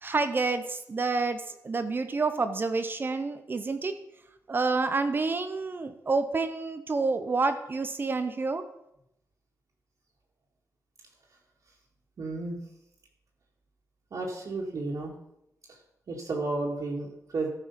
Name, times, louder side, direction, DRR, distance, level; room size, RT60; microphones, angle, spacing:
voice 1, 0.0-3.9 4.5-8.6, right 3 dB, 35° right, 9 dB, 0.8 m, -28 dB
voice 2, 12.2-12.6 14.1-15.1 15.7-15.8 16.1-17.5, right 3 dB, 65° right, -3 dB, 2.1 m, -32 dB
14.0 x 5.5 x 5.6 m, 0.81 s
wide cardioid pair, 135°, 6 cm